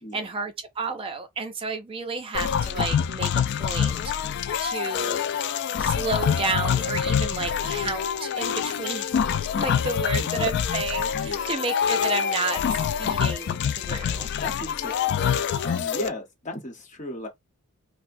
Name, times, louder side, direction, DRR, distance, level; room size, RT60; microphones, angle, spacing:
voice 1, 0.1-4.3 4.6-5.2 5.8-9.2 9.5-14.3, right 4 dB, 25° right, 0.4 m, -32 dB
sound 1, 2.3-16.1, left 8 dB, 55° left, 0.3 m, -26 dB
voice 2, 11.2-11.6 14.4-15.3 15.6-17.3, left 1 dB, 35° left, 1.0 m, -36 dB
4.2 x 2.0 x 2.6 m
head